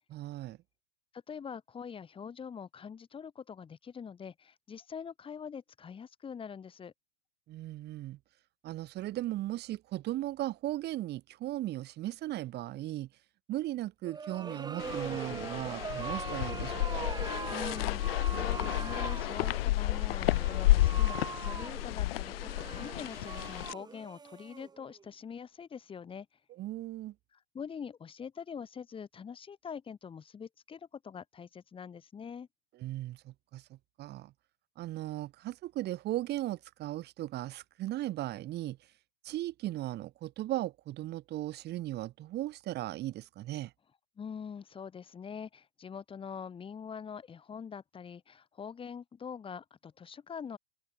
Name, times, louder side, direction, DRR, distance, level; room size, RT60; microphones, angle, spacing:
voice 1, 0.1-0.6 7.5-8.2 8.6-13.1 13.5-17.0 26.5-27.1 32.8-34.3 34.8-38.8 39.2-43.7, right 15 dB, 30° right, 6.6 m, -37 dB
voice 2, 1.1-6.9 17.5-26.3 27.5-32.5 44.2-50.6, left 7 dB, 15° left, 5.8 m, -44 dB
sound 1, 14.0-25.0, right 5 dB, 10° right, 4.2 m, -42 dB
sound 2, 14.8-23.7, left 16 dB, 65° left, 0.6 m, -31 dB
hypercardioid pair, 135°, 32 cm